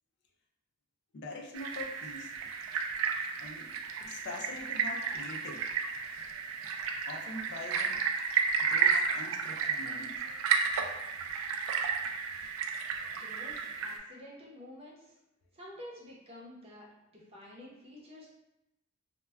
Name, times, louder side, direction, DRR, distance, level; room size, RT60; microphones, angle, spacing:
voice 1, 1.1-2.4 3.4-3.7 4.0-5.7 7.1-8.0 8.6-10.2, left 2 dB, 55° left, 1 dB, 0.4 m, -44 dB
sound 1, 1.5-14.0, right 6 dB, 80° right, 0.3 m, -32 dB
voice 2, 13.2-15.0 15.5-18.3, left 1 dB, 30° right, -4 dB, 0.7 m, -49 dB
2.2 x 2.2 x 3.3 m, 0.89 s
head